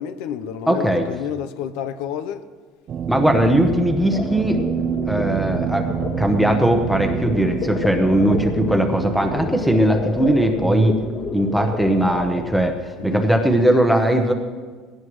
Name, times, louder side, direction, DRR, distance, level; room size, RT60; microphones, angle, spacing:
voice 1, 0.0-2.4 13.0-13.3, left 9 dB, 75° left, 0.7 m, -30 dB
voice 2, 0.7-1.1 3.1-4.6 5.0-5.8 6.2-11.0 11.3-12.8 13.0-14.3, right 1 dB, ahead, 1.0 m, -19 dB
sound 1, 2.9-9.6, right 8 dB, 35° right, 0.5 m, -27 dB
sound 2, 4.1-12.4, left 2 dB, 35° left, 1.7 m, -29 dB
20.0 x 16.5 x 3.2 m
cardioid pair, 160°, 0 cm